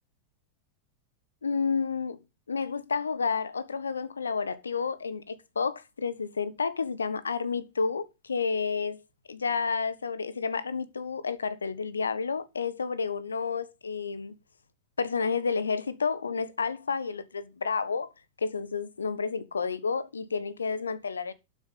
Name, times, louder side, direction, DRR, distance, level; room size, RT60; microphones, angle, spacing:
voice 1, 1.4-2.2 2.5-9.0 9.3-14.3 15.0-18.1 18.4-21.3, left 5 dB, 75° left, 1.4 m, -30 dB
12.0 x 7.7 x 5.4 m
figure-of-eight pair, 90°, 0 cm